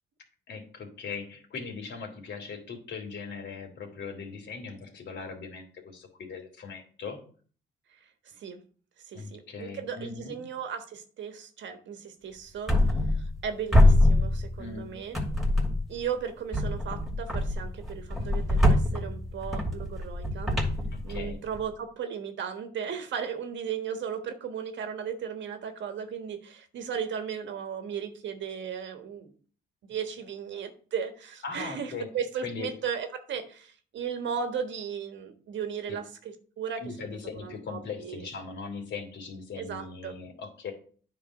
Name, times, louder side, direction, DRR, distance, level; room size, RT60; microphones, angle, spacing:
voice 1, 0.5-7.2 9.1-10.5 14.6-14.9 20.9-21.4 31.4-32.1 32.4-32.7 35.9-36.0 36.8-40.7, left 5 dB, 65° left, 3 dB, 2.8 m, -39 dB
voice 2, 9.1-12.7 13.4-15.2 15.9-20.5 21.0-29.3 29.9-36.1 36.6-38.3 39.6-40.2, right 7 dB, 65° right, 7 dB, 1.4 m, -36 dB
sound 1, 12.7-13.5 13.7-14.8 15.1-16.0 16.5-21.6, left 1 dB, ahead, 2.5 m, -24 dB
9.5 x 3.7 x 6.4 m, 0.43 s
cardioid pair, 90°, 20 cm